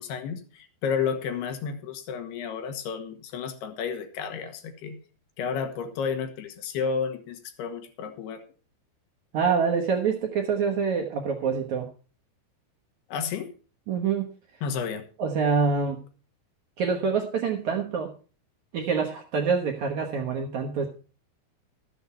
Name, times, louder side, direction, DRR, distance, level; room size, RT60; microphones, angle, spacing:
voice 1, 0.0-5.0 5.4-8.4 13.1-13.5 14.6-15.1, left 6 dB, 75° left, 5 dB, 3.3 m, -31 dB
voice 2, 9.3-11.9 13.9-14.3 15.2-16.0 16.8-18.1 18.7-20.9, right 5 dB, 65° right, 1 dB, 1.9 m, -26 dB
13.0 x 8.0 x 5.6 m, 0.36 s
omnidirectional pair, 4.9 m